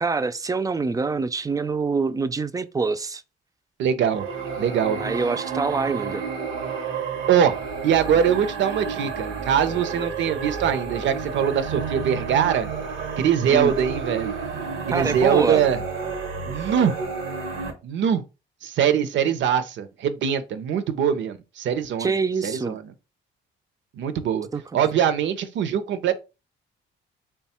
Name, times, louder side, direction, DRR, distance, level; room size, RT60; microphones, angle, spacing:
voice 1, 0.0-3.2 5.0-6.2 13.5-13.7 14.9-15.7 22.0-22.8 24.5-24.6, right 4 dB, 20° right, 0.3 m, -25 dB
voice 2, 3.8-4.3 4.6-5.0 7.3-7.6 7.8-12.7 13.2-14.3 14.9-15.8 16.5-16.9 17.8-18.2 18.6-22.1 22.4-22.8 23.9-24.5 24.7-26.1, right 8 dB, 70° right, 0.6 m, -22 dB
sound 1, 4.1-17.7, right 5 dB, 90° right, 1.0 m, -31 dB
3.4 x 2.3 x 4.2 m
cardioid pair, 90°, 20 cm